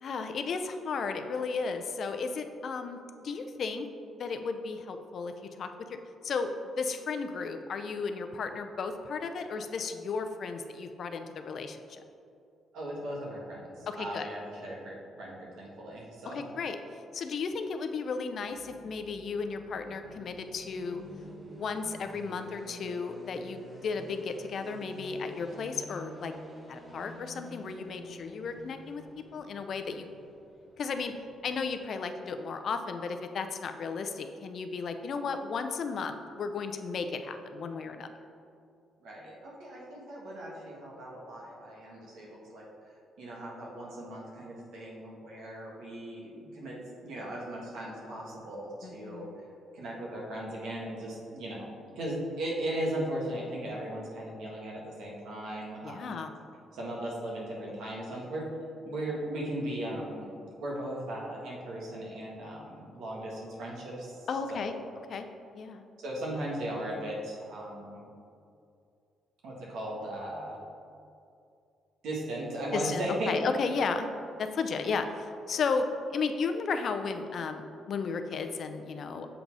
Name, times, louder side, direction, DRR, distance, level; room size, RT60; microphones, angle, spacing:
voice 1, 0.0-3.9 4.1-5.3 5.6-6.0 6.2-6.5 6.8-12.0 13.9-14.3 16.2-16.8 17.1-21.0 21.5-26.3 26.7-29.0 29.3-30.1 30.8-31.1 31.4-38.1 48.8-49.3 55.8-56.3 64.3-64.7 65.1-65.3 65.5-65.8 72.7-74.1 74.4-75.9 76.1-79.3, left 5 dB, 60° left, 7 dB, 0.5 m, -34 dB
voice 2, 12.7-16.4 39.0-42.6 43.2-49.3 49.7-56.1 56.7-58.5 58.9-64.8 66.0-68.0 69.4-70.6 72.0-73.3, right 1 dB, 80° right, -3 dB, 1.6 m, -37 dB
sound 1, 18.2-32.1, equal, 25° right, 1.1 m, -50 dB
6.9 x 3.9 x 4.7 m, 2.5 s
cardioid pair, 90°, 0 cm